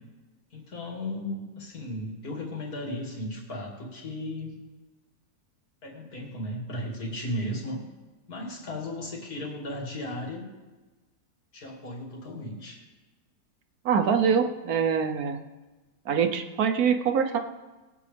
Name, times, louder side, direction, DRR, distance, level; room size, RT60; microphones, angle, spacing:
voice 1, 0.5-4.5 5.8-7.8 8.3-10.5 11.5-12.8, left 1 dB, 65° left, -2 dB, 2.8 m, -35 dB
voice 2, 13.8-15.4 16.1-17.4, right 6 dB, 65° right, 6 dB, 1.3 m, -24 dB
20.5 x 8.6 x 3.4 m, 1.2 s
omnidirectional pair, 1.8 m